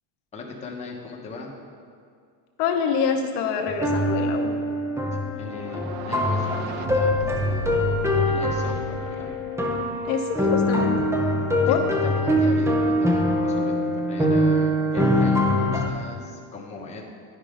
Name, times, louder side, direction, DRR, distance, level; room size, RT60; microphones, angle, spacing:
voice 1, 0.3-1.5 5.4-9.3 11.7-17.1, left 3 dB, 15° left, -2 dB, 1.0 m, -38 dB
voice 2, 2.6-4.5 10.0-11.0 11.7-11.8, left 6 dB, 60° left, 3 dB, 0.9 m, -25 dB
sound 1, 3.7-15.9, left 1 dB, 5° right, 0.5 m, -23 dB
sound 2, 5.5-10.3, right 9 dB, 80° right, 0.6 m, -37 dB
10.5 x 5.5 x 4.9 m, 2.2 s
cardioid pair, 140°, 47 cm